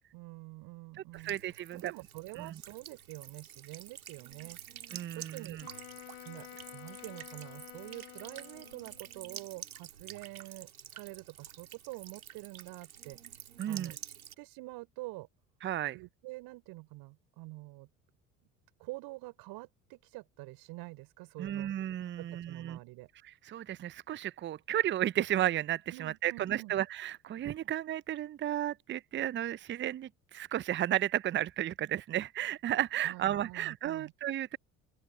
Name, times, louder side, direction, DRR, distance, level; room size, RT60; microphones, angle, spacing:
voice 1, 0.1-4.6 5.1-5.6 6.2-13.2 13.7-15.3 15.9-17.9 18.8-21.7 22.2-23.1 25.9-26.7 33.0-34.1, right 22 dB, 60° right, 6.0 m, -47 dB
voice 2, 1.1-1.9 2.4-2.6 4.9-5.6 13.6-13.9 15.6-16.0 21.4-22.8 23.5-34.6, right 12 dB, 25° right, 0.7 m, -33 dB
Buzz / Water tap faucet / Trickle dribble, 1.1-14.3, right 10 dB, 85° right, 2.1 m, -49 dB
Wind instrument woodwind instrument, 5.6-9.2, left 35 dB, 65° left, 4.2 m, -50 dB
open air
hypercardioid pair, 65°, 42 cm